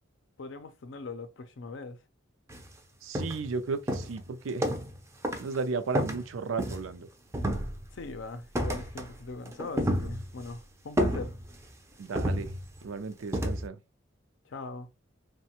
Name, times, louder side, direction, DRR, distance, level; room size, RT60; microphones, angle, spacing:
voice 1, 0.4-2.0 7.9-11.3 14.5-14.9, left 3 dB, 65° left, 0.5 m, -40 dB
sound 1, 2.5-2.7 3.1-3.6 3.9-5.0 5.2-5.6 5.9-7.0 7.3-8.0 8.6-9.2 9.5-10.5 11.0-11.7 12.2-12.9 13.3-13.7, equal, 15° right, 0.4 m, -31 dB
voice 2, 3.0-4.7 5.4-7.1 12.0-12.5 12.8-13.8, right 4 dB, 85° right, 0.4 m, -34 dB
3.1 x 2.2 x 2.8 m
head